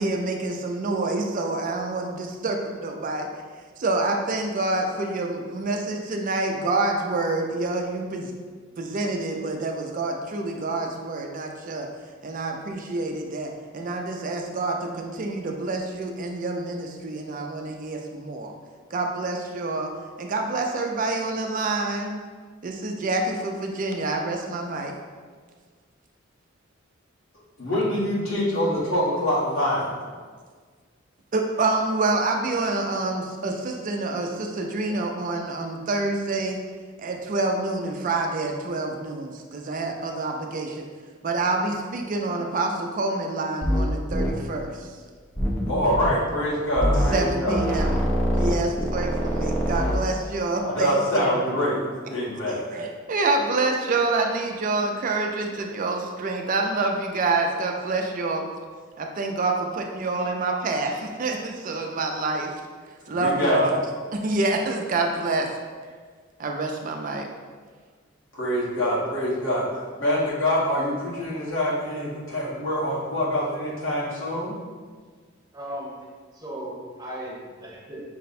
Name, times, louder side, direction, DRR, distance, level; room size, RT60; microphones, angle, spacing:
voice 1, 0.0-3.3 3.8-8.3 8.8-11.9 12.2-18.5 18.9-19.9 20.2-22.2 22.6-24.9 31.3-36.6 37.0-40.8 41.2-44.9 47.1-48.1 48.3-51.6 52.5-58.5 59.0-62.6 63.1-63.8 64.1-65.5 66.4-67.3, right 2 dB, 40° right, 2 dB, 0.4 m, -27 dB
voice 2, 27.6-30.0 45.7-47.6 50.6-52.7 63.1-63.6 68.3-74.6, left 1 dB, 85° left, -6 dB, 1.4 m, -25 dB
sound 1, 43.6-43.8 44.1-44.3 45.4-46.1 46.8-47.2 47.5-50.0, equal, 10° left, 0.5 m, -24 dB
voice 3, 75.5-75.9 76.3-78.0, equal, 20° right, -5 dB, 1.1 m, -36 dB
5.6 x 2.2 x 4.1 m, 1.5 s
head